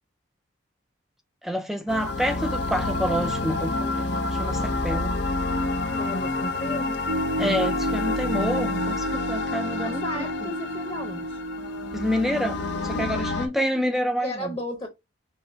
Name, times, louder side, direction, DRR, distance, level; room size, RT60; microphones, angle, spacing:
voice 1, 1.4-5.1 7.4-10.5 11.9-14.6, equal, ahead, 0.6 m, -28 dB
sound 1, 1.9-13.5, left 2 dB, 60° left, 0.7 m, -28 dB
voice 2, 5.9-7.0 9.8-11.4 12.8-13.2 14.2-14.9, left 1 dB, 30° left, 0.9 m, -35 dB
sound 2, 7.1-13.0, right 1 dB, 70° right, 0.6 m, -32 dB
5.6 x 2.0 x 4.3 m
head